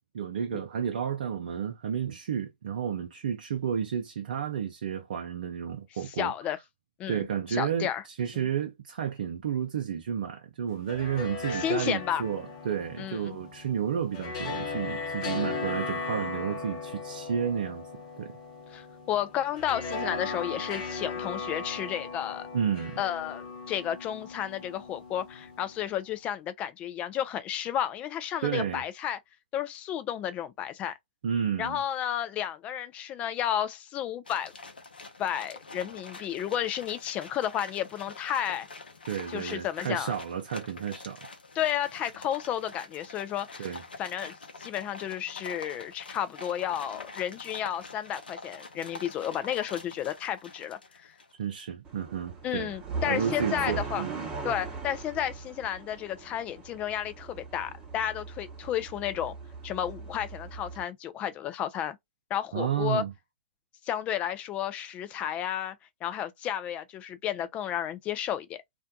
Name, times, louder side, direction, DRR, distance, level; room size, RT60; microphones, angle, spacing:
voice 1, 0.0-6.3 7.1-17.9 18.2-18.3 22.5-23.0 28.4-28.8 31.2-31.8 39.1-41.3 43.6-43.8 51.4-52.8 53.1-54.3 62.5-63.1, right 8 dB, 65° right, 0.5 m, -31 dB
voice 2, 6.2-6.6 7.0-8.0 11.5-12.2 13.0-13.4 18.7-22.5 23.0-29.2 29.5-30.9 31.6-34.5 35.2-38.7 39.3-40.1 41.6-43.7 44.0-44.3 44.6-50.8 52.4-54.0 54.4-59.4 59.6-62.0 62.3-63.0 63.9-65.8 66.0-68.6, left 10 dB, 25° left, 0.4 m, -32 dB
sound 1, 10.7-25.9, left 4 dB, 50° left, 0.9 m, -37 dB
sound 2, 34.2-51.4, left 3 dB, 80° left, 0.7 m, -46 dB
sound 3, 51.9-60.8, right 5 dB, 20° right, 0.9 m, -39 dB
2.5 x 2.2 x 2.6 m
hypercardioid pair, 115°, 5 cm